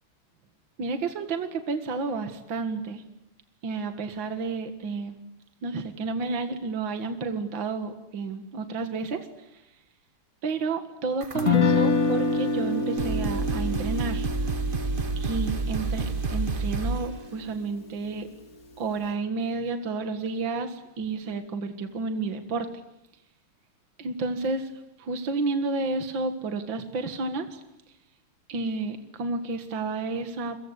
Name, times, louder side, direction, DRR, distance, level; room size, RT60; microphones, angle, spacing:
voice 1, 0.8-3.0 3.6-5.1 5.6-9.3 10.4-14.3 15.2-18.3 18.8-22.7 24.0-24.7 25.0-27.6 28.5-30.6, right 3 dB, 60° right, 7 dB, 2.5 m, -31 dB
sound 1, 11.2-11.8 12.6-12.7 13.0-17.2, right 3 dB, 30° right, 1.2 m, -29 dB
Guitar, 11.4-17.5, left 4 dB, 40° left, 2.7 m, -27 dB
29.5 x 24.0 x 8.3 m, 0.87 s
omnidirectional pair, 2.4 m